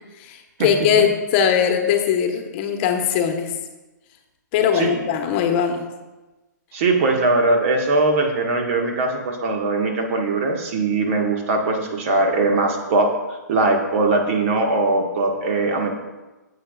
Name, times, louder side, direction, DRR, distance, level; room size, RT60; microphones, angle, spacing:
voice 1, 0.2-3.5 4.5-5.8, left 8 dB, 35° left, 5 dB, 1.2 m, -20 dB
voice 2, 4.7-5.0 6.7-13.1 13.5-15.9, right 2 dB, 45° right, 3 dB, 1.6 m, -20 dB
15.5 x 8.1 x 2.4 m, 1.1 s
figure-of-eight pair, 120°, 10 cm